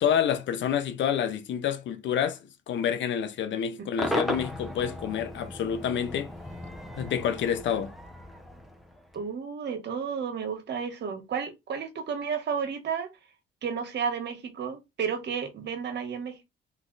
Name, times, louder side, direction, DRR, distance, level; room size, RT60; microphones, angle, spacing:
voice 1, 0.0-2.4 2.7-6.3 7.0-7.9, left 8 dB, 70° left, 0.8 m, -28 dB
voice 2, 3.8-4.1 9.1-13.1 13.6-16.4, right 6 dB, 60° right, 1.4 m, -32 dB
Cheering / Crowd / Fireworks, 4.0-9.3, equal, ahead, 1.0 m, -36 dB
3.4 x 3.2 x 4.0 m
cardioid pair, 90°, 20 cm